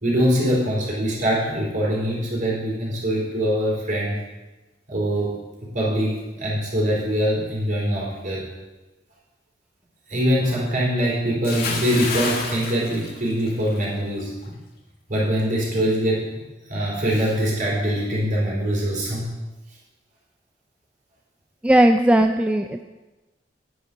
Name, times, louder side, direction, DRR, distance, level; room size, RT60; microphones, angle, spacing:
voice 1, 0.0-4.2 4.9-5.4 5.7-8.4 10.1-14.3 15.1-16.3 16.7-19.3, equal, 50° right, -4 dB, 4.1 m, -23 dB
Bathtub (filling or washing) / Splash splatter, 11.4-13.9 14.2-14.5, left 4 dB, 60° left, 1.8 m, -29 dB
voice 2, 21.6-22.8, right 1 dB, 5° right, 5 dB, 0.3 m, -17 dB
9.7 x 9.6 x 5.0 m, 1.1 s
head